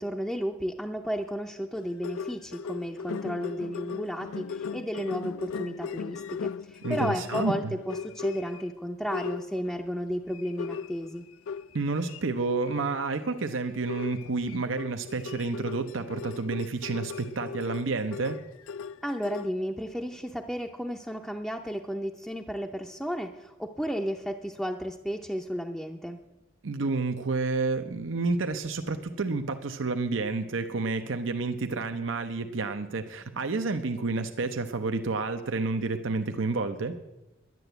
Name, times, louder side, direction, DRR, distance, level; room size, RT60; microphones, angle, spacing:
voice 1, 0.0-11.3 19.0-26.2, equal, ahead, 0 dB, 0.5 m, -33 dB
sound 1, 1.8-8.7 9.1-9.8 10.3-12.2 12.6-12.9 13.2-13.4 13.9-19.5, left 6 dB, 85° left, 0.4 m, -37 dB
voice 2, 6.8-7.5 11.7-18.4 26.6-37.0, right 3 dB, 75° right, 7 dB, 0.8 m, -30 dB
11.0 x 11.0 x 8.0 m, 1.0 s
head